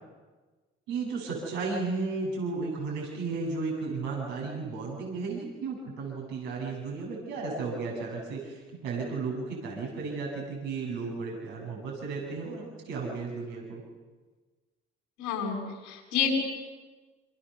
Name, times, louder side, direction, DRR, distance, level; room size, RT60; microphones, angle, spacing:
voice 1, 0.9-13.8, right 4 dB, 90° right, -2 dB, 7.4 m, -34 dB
voice 2, 15.2-16.3, left 8 dB, 90° left, 0 dB, 7.9 m, -30 dB
28.0 x 26.5 x 7.0 m, 1.3 s
supercardioid pair, 60°, 29 cm